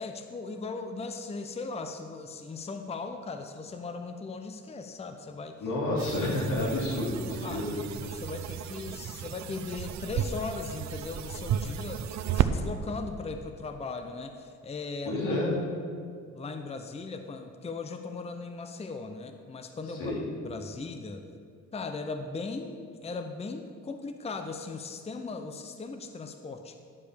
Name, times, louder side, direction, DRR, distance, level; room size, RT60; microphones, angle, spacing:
voice 1, 0.0-5.6 6.6-6.7 7.4-7.7 8.0-15.4 16.3-20.2 20.4-21.2 21.7-26.8, left 4 dB, 20° left, 7 dB, 0.6 m, -38 dB
voice 2, 5.6-7.8 15.0-15.6 20.0-20.2, left 1 dB, 85° left, -3 dB, 2.8 m, -29 dB
sound 1, 6.0-12.5, right 10 dB, 65° right, 0.6 m, -33 dB
11.0 x 5.0 x 6.8 m, 2.2 s
cardioid pair, 90°, 30 cm